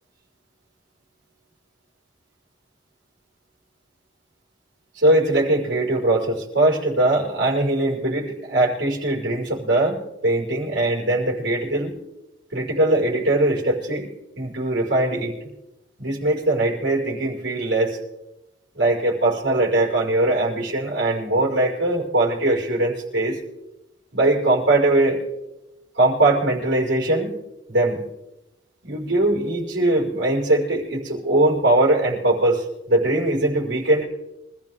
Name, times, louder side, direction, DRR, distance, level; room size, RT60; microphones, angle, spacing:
voice 1, 5.0-11.9 12.5-14.1 14.4-15.3 16.0-18.0 18.7-23.4 24.1-25.2 26.0-27.4 27.7-28.0 28.8-34.0, right 1 dB, 70° right, -3 dB, 5.5 m, -21 dB
26.0 x 14.5 x 3.7 m, 0.95 s
head